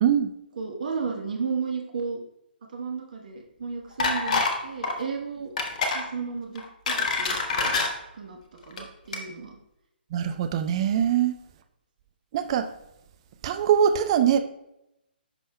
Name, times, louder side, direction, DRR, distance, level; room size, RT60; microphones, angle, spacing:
voice 1, 0.6-2.2 2.7-5.5 5.9-7.8 8.1-8.4 8.7-9.6, right 5 dB, 50° right, 2 dB, 1.1 m, -33 dB
sound 1, 4.0-4.6 4.8-5.0 5.6-6.0 6.6-7.9 8.6-8.8 9.1-9.2, left 4 dB, 45° left, 1.1 m, -26 dB
voice 2, 10.1-11.4 12.3-12.7 13.4-14.4, right 9 dB, 30° right, 9 dB, 0.5 m, -22 dB
10.5 x 5.4 x 2.2 m, 0.84 s
figure-of-eight pair, 135°, 6 cm